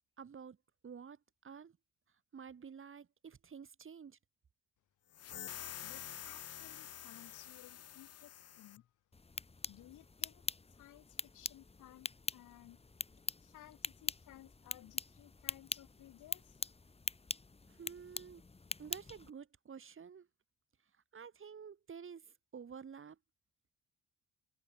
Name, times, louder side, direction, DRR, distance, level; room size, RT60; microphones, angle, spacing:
voice 1, 0.2-0.6 0.8-1.8 2.3-4.2 17.7-18.4 18.8-20.3 21.1-23.2, right 6 dB, 45° right, 3.4 m, -51 dB
sound 1, 5.1-8.8, left 10 dB, 55° left, 1.2 m, -48 dB
voice 2, 5.8-8.8 9.7-10.4 10.7-12.8 13.4-16.6, left 14 dB, 80° left, 2.1 m, -58 dB
sound 2, 9.1-19.3, left 3 dB, 20° left, 1.8 m, -44 dB
cardioid pair, 90°, 30 cm